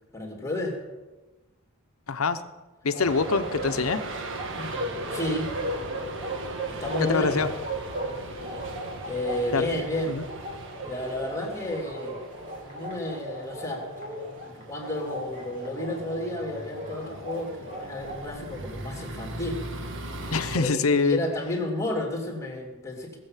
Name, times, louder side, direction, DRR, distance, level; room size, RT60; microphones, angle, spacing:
voice 1, 0.1-0.8 4.5-5.5 6.7-7.4 9.0-10.1 10.8-12.2 12.6-13.9 14.5-19.6 20.5-23.2, left 1 dB, 15° left, 1 dB, 2.8 m, -32 dB
voice 2, 2.1-2.4 2.8-4.0 7.0-7.5 9.5-9.7 10.1-10.2 20.3-21.2, left 4 dB, 85° left, 11 dB, 0.9 m, -24 dB
Bark, 2.9-18.2, right 1 dB, 40° right, 3.8 m, -37 dB
sound 1, 3.0-20.6, right 2 dB, 65° right, 1.4 m, -39 dB
18.5 x 7.7 x 7.4 m, 1.2 s
head